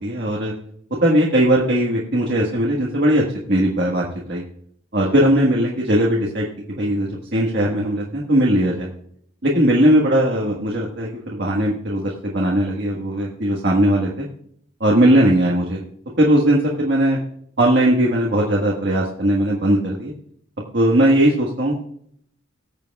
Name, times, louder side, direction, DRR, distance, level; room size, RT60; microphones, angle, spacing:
voice 1, 0.0-0.5 1.0-4.4 4.9-8.9 9.4-14.3 14.8-15.8 16.2-17.2 17.6-20.1 20.7-21.8, right 1 dB, 50° right, -3 dB, 1.5 m, -19 dB
19.5 x 7.7 x 2.3 m, 0.67 s
head